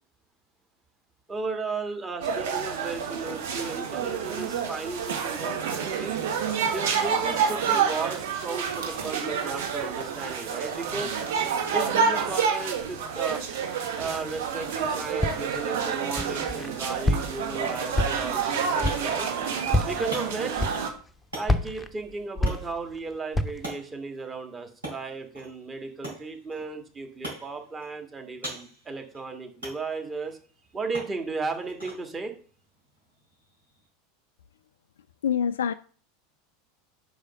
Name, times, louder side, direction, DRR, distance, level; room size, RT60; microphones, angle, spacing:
voice 1, 1.3-6.2 6.7-11.1 11.7-13.4 14.0-19.3 19.8-20.6 21.3-30.4 30.7-32.3, right 3 dB, 20° right, 1.8 m, -35 dB
sound 1, 2.2-20.9, right 6 dB, 65° right, 1.5 m, -28 dB
Walk footsteps, 15.2-15.7 16.2-16.7 17.0-17.5 17.9-18.4 18.8-19.2 19.7-20.1 20.6-21.1 21.4-23.0 23.3-23.7, left 1 dB, 10° left, 0.7 m, -27 dB
sound 2, 19.8-33.9, right 1 dB, 90° right, 3.9 m, -44 dB
voice 2, 35.2-35.7, left 8 dB, 75° left, 0.3 m, -25 dB
5.5 x 5.0 x 6.2 m
figure-of-eight pair, 85°, 0 cm